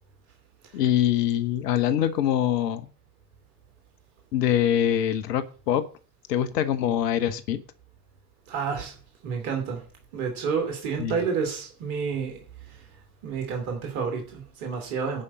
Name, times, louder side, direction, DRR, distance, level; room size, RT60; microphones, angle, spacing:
voice 1, 0.7-2.9 4.3-5.9 6.3-7.6 11.0-11.2, left 10 dB, 75° left, 11 dB, 1.2 m, -24 dB
voice 2, 8.5-8.9 9.2-9.8 10.1-12.4 12.7-12.9 13.2-15.2, right 6 dB, 70° right, 3 dB, 2.9 m, -29 dB
10.5 x 5.4 x 8.3 m, 0.39 s
figure-of-eight pair, 50°, 49 cm